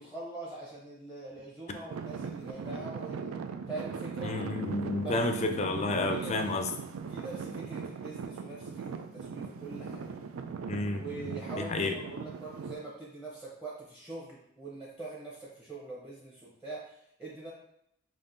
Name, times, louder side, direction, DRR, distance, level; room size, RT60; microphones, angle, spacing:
voice 1, 0.0-3.4 3.7-4.4 5.0-5.2 6.1-6.5 7.1-10.2 11.0-17.5, right 2 dB, 5° right, -5 dB, 0.7 m, -43 dB
Traffic noise roadway noise / Engine, 1.9-12.7, right 5 dB, 90° right, 0.3 m, -39 dB
voice 2, 4.2-6.7 10.7-11.3 11.6-12.0, left 2 dB, 35° left, 6 dB, 0.4 m, -31 dB
5.2 x 2.6 x 2.6 m, 0.75 s
head